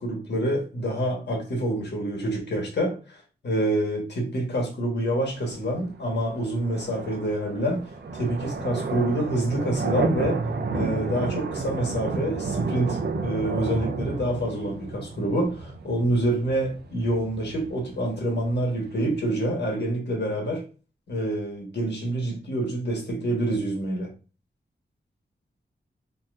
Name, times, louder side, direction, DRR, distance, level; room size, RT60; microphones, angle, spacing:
voice 1, 0.0-7.8 8.1-10.4 10.7-20.6 21.1-24.1, right 1 dB, 70° left, 1.5 m, -27 dB
sound 1, 5.4-19.3, right 4 dB, 65° right, 0.6 m, -32 dB
4.0 x 2.9 x 2.5 m
wide cardioid pair, 130°, 19 cm